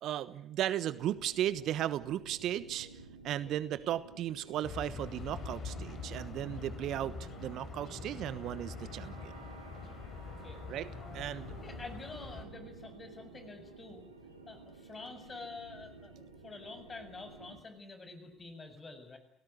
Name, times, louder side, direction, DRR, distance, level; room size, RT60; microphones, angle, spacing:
voice 1, 0.0-2.9 3.2-9.3 10.7-10.9 11.1-11.5, right 12 dB, 55° right, 16 dB, 1.2 m, -35 dB
sound 1, 0.9-17.6, right 4 dB, 85° right, 2.8 m, -52 dB
sound 2, 4.6-12.5, left 5 dB, 45° left, 5.2 m, -44 dB
voice 2, 11.5-14.0 14.5-19.2, left 3 dB, 25° left, 9 dB, 7.3 m, -48 dB
29.0 x 18.0 x 9.5 m, 0.72 s
figure-of-eight pair, 55°, 0 cm